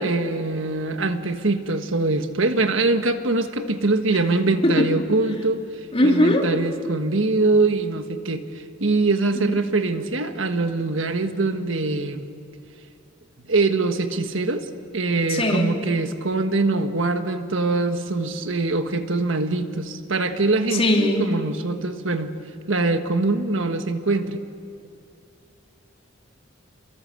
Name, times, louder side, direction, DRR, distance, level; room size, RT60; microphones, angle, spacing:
voice 1, 0.0-5.6 6.0-8.4 8.8-12.3 13.5-14.7 14.9-22.3 22.7-24.4, right 3 dB, 75° right, 7 dB, 1.5 m, -23 dB
voice 2, 5.9-6.5 9.4-9.5 15.3-15.7 20.7-21.3, left 1 dB, 30° left, 1 dB, 3.2 m, -19 dB
28.0 x 23.0 x 7.8 m, 2.5 s
head